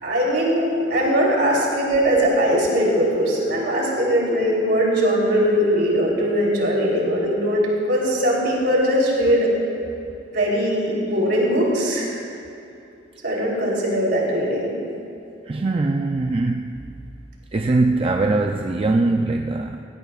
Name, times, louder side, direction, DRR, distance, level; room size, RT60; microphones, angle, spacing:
voice 1, 0.0-7.6 7.9-9.5 10.3-12.2 13.2-14.8, equal, 65° right, -3 dB, 3.5 m, -20 dB
voice 2, 15.5-16.8 17.5-19.8, right 2 dB, 30° right, 4 dB, 0.4 m, -21 dB
18.0 x 17.0 x 2.4 m, 2.7 s
head